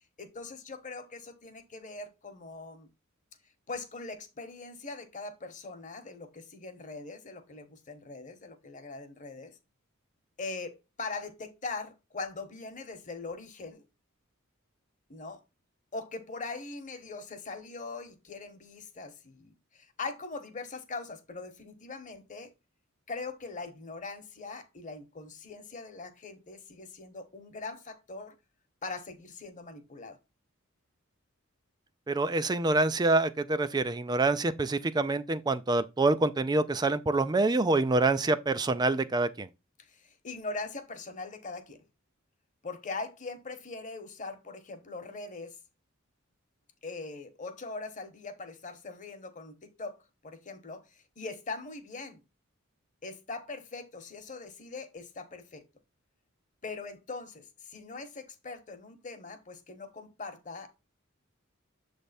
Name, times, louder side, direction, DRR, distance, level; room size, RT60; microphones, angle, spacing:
voice 1, 0.2-2.9 3.7-9.5 10.4-13.8 15.1-15.4 15.9-22.5 23.1-28.3 28.8-30.2 39.8-41.8 42.6-45.6 46.8-50.0 50.2-52.2 53.0-55.6 56.6-60.8, left 3 dB, 35° left, 1.1 m, -41 dB
voice 2, 32.1-39.5, right 2 dB, 20° right, 0.4 m, -26 dB
7.3 x 3.4 x 4.1 m
head